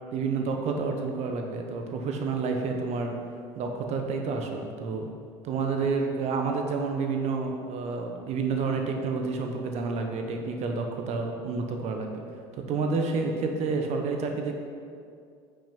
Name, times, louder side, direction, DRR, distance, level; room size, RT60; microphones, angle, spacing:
voice 1, 0.1-3.2 3.6-5.1 5.4-12.2 12.5-14.5, right 4 dB, 60° right, 3 dB, 1.1 m, -29 dB
8.7 x 5.8 x 5.3 m, 2.4 s
hypercardioid pair, 75°, 13 cm